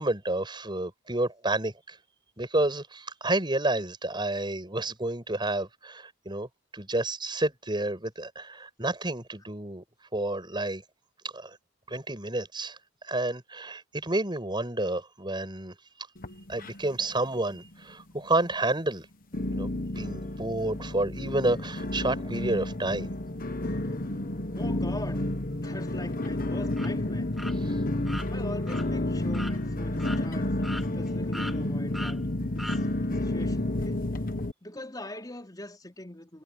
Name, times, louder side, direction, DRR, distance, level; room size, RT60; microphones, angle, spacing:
voice 1, 0.0-2.0 2.4-6.5 6.7-9.8 10.1-10.8 11.3-11.6 11.9-12.8 13.1-15.7 16.5-19.1 19.5-23.1, right 2 dB, 25° right, 6.9 m, -30 dB
sound 1, 16.2-17.1 17.4-18.0 18.5-18.6 19.3-34.5, left 1 dB, 45° left, 1.3 m, -31 dB
voice 2, 24.5-25.3 25.6-27.3 28.3-32.2 32.6-32.9 33.1-34.0 34.6-36.4, left 1 dB, 20° left, 4.4 m, -42 dB
sound 2, 26.7-26.9 27.4-27.5 28.0-28.3 28.7-28.8 29.3-29.6 30.0-30.2 30.6-31.1 31.3-31.6 31.9-32.2 32.6-32.8, equal, ahead, 4.4 m, -38 dB
head